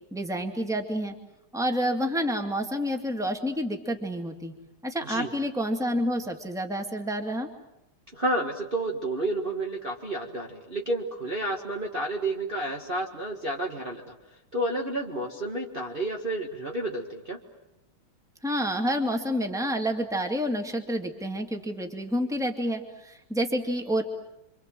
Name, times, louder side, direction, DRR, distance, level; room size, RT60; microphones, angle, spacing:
voice 1, 0.1-1.1 1.5-4.5 4.8-7.5 18.4-24.0, equal, ahead, 4 dB, 2.1 m, -29 dB
voice 2, 8.1-14.2 14.5-17.4, right 1 dB, 25° right, -1 dB, 1.8 m, -30 dB
27.0 x 25.5 x 7.7 m, 0.90 s
omnidirectional pair, 2.4 m